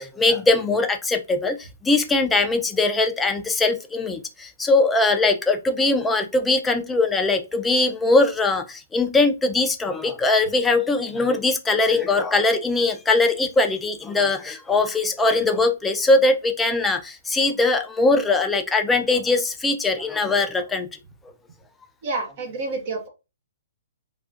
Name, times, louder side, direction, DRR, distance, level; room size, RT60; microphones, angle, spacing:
voice 1, 0.0-20.9, left 3 dB, 10° left, 0.4 m, -21 dB
voice 2, 22.0-23.1, right 3 dB, 50° right, 0.8 m, -28 dB
3.5 x 2.3 x 2.5 m
hypercardioid pair, 140°, 0 cm